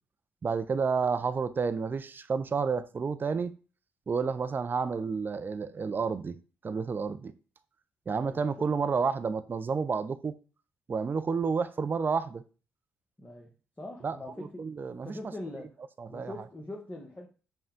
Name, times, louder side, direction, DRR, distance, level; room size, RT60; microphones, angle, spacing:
voice 1, 0.4-3.5 4.1-6.4 6.6-7.3 8.1-10.3 10.9-12.4 14.0-15.1 16.0-16.3, right 5 dB, 35° right, 0.5 m, -30 dB
voice 2, 8.1-8.7 13.2-13.5 13.8-15.8 16.1-17.3, left 1 dB, 20° left, 1.0 m, -43 dB
5.5 x 2.2 x 3.6 m
hypercardioid pair, 45°, 6 cm